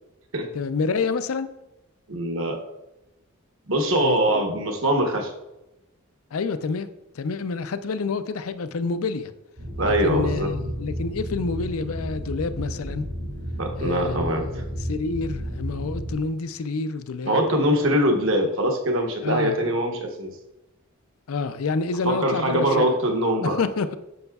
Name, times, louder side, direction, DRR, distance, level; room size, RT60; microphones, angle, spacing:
voice 1, 0.5-1.5 4.0-4.4 6.3-6.9 7.2-9.3 9.8-13.1 13.8-17.4 19.2-19.6 21.3-22.9 23.4-23.9, left 4 dB, 85° left, 11 dB, 0.5 m, -28 dB
voice 2, 2.1-2.6 3.7-5.3 9.8-10.5 13.6-14.6 17.2-20.3 22.0-23.6, right 1 dB, 65° right, 2 dB, 1.1 m, -23 dB
sound 1, 9.6-16.2, equal, 85° right, 2.2 m, -32 dB
9.3 x 6.7 x 2.3 m, 0.94 s
head